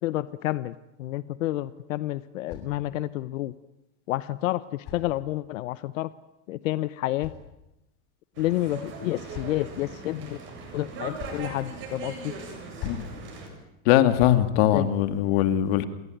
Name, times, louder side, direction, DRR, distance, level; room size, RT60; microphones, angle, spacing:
voice 1, 0.0-3.5 4.1-6.1 6.5-7.3 8.4-10.4 10.7-12.3 14.7-14.9, left 15 dB, 90° left, 16 dB, 1.1 m, -29 dB
sound 1, 1.6-3.2 4.2-5.7 6.7-8.0 8.8-9.9 10.8-11.5 12.5-13.2 13.9-14.5, left 7 dB, 35° left, 7.6 m, -44 dB
sound 2, 8.3-13.5, right 4 dB, 30° right, 7.9 m, -40 dB
voice 2, 13.8-15.8, left 12 dB, 50° left, 11 dB, 2.3 m, -21 dB
29.0 x 21.5 x 9.3 m, 0.90 s
supercardioid pair, 175°, 38 cm